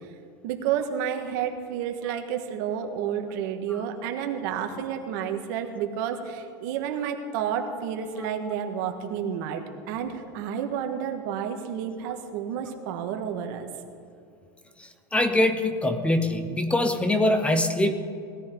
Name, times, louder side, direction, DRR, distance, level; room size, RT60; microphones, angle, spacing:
voice 1, 0.4-13.7, right 8 dB, 65° right, 5 dB, 1.7 m, -30 dB
voice 2, 15.1-17.9, left 1 dB, 10° left, 9 dB, 0.9 m, -23 dB
19.5 x 14.0 x 3.9 m, 2.5 s
supercardioid pair, 130°, 11 cm